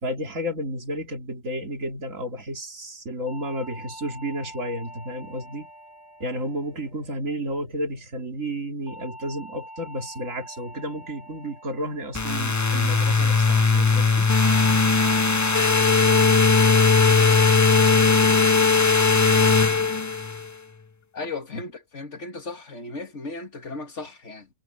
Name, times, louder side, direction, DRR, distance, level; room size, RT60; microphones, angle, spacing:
voice 1, 0.0-5.7 6.2-14.3, equal, 85° right, 3.4 m, -32 dB
sound 1, 3.3-7.7 8.9-13.3 14.5-14.8 15.2-15.6 16.0-16.4 16.8-17.2 17.6-18.0 18.4-18.8, equal, 25° right, 3.6 m, -46 dB
sound 2, 12.1-20.5, left 4 dB, 25° left, 0.4 m, -19 dB
voice 2, 21.1-24.5, left 3 dB, 65° left, 2.4 m, -36 dB
omnidirectional pair, 1.3 m